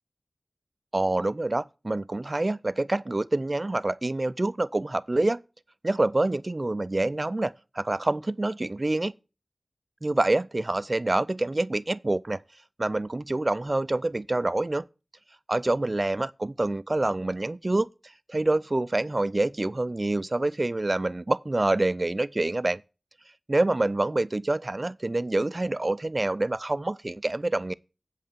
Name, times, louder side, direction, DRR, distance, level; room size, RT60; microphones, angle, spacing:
voice 1, 0.9-5.4 5.8-9.1 10.0-12.4 12.8-14.8 15.5-17.9 18.3-22.8 23.5-27.7, right 2 dB, 40° right, 0.4 m, -26 dB
8.4 x 5.4 x 6.8 m
wide cardioid pair, 45°, 0 cm